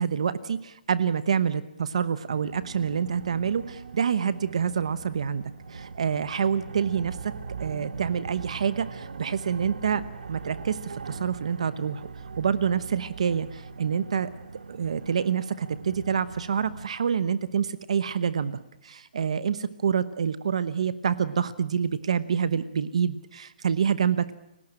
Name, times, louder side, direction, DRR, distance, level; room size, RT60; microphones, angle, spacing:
voice 1, 0.0-5.4 5.7-7.3 7.6-10.0 10.3-12.1 12.4-14.3 14.7-24.3, right 7 dB, 45° right, 15 dB, 1.0 m, -27 dB
sound 1, 2.3-16.9, right 5 dB, 65° right, 1.8 m, -41 dB
29.0 x 18.0 x 8.9 m, 0.83 s
hypercardioid pair, 180°, 5 cm